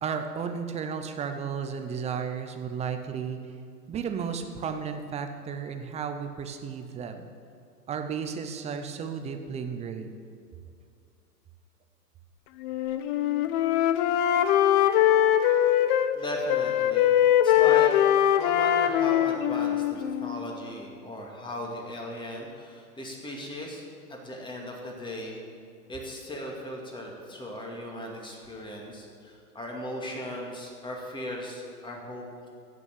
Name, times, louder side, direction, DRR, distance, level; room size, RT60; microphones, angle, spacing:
voice 1, 0.0-3.4 3.9-7.3 7.9-10.2, right 6 dB, 15° right, 7 dB, 0.7 m, -33 dB
Wind instrument woodwind instrument, 12.6-16.1 16.5-20.5, left 11 dB, 35° left, 0.7 m, -22 dB
voice 2, 16.1-17.9 18.4-23.8 24.1-25.4 25.9-32.5, left 1 dB, 10° left, 0 dB, 2.3 m, -37 dB
15.5 x 6.1 x 8.8 m, 2.3 s
hypercardioid pair, 120°, 48 cm